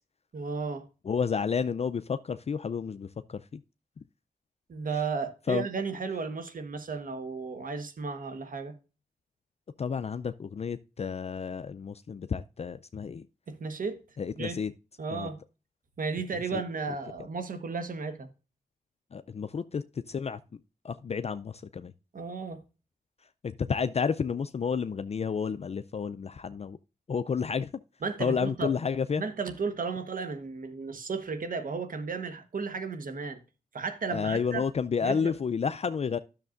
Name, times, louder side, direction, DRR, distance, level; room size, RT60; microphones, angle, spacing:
voice 1, 0.3-0.8 4.7-8.7 13.5-14.0 14.4-14.6 15.0-15.4 16.0-18.3 22.1-22.6 28.0-28.7 29.2-33.4 33.7-34.7 35.0-35.3, right 4 dB, 60° right, 1.2 m, -34 dB
voice 2, 1.1-3.4 5.5-5.7 9.8-13.2 14.2-14.7 15.1-15.3 16.5-16.6 19.1-20.4 20.8-21.9 23.4-26.8 27.1-27.7 28.2-29.2 34.1-36.2, left 6 dB, 45° left, 0.4 m, -31 dB
10.5 x 6.6 x 2.5 m
cardioid pair, 50°, 16 cm